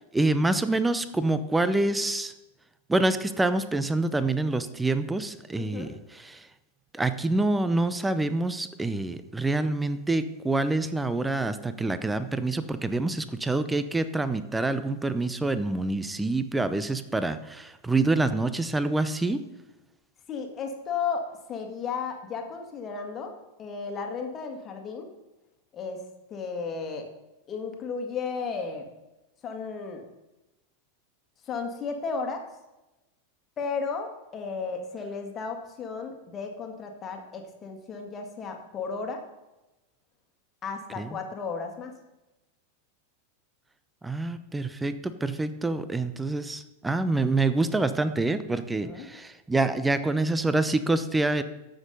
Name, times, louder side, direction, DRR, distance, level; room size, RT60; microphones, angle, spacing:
voice 1, 0.0-2.3 2.9-6.5 6.9-19.4 41.0-41.2 44.0-51.4, right 2 dB, 10° right, 12 dB, 0.7 m, -26 dB
voice 2, 5.6-5.9 20.3-25.1 25.7-26.0 26.3-27.1 27.5-28.9 29.4-30.0 31.4-32.4 33.6-39.2 40.6-41.9 48.8-49.1, left 5 dB, 25° left, 4 dB, 2.0 m, -34 dB
14.0 x 6.4 x 5.5 m, 1.0 s
figure-of-eight pair, 90°, 0 cm